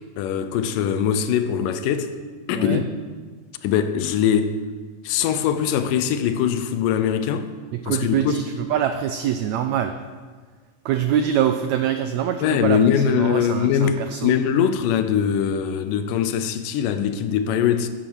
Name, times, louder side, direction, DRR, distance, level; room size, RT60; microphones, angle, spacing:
voice 1, 0.2-2.2 2.5-2.9 3.6-4.6 5.0-7.5 7.8-8.4 12.4-17.9, left 8 dB, 85° left, 2.3 m, -22 dB
voice 2, 7.7-9.9 10.8-14.3, right 9 dB, 85° right, 1.5 m, -24 dB
10.5 x 8.9 x 6.1 m
omnidirectional pair, 3.8 m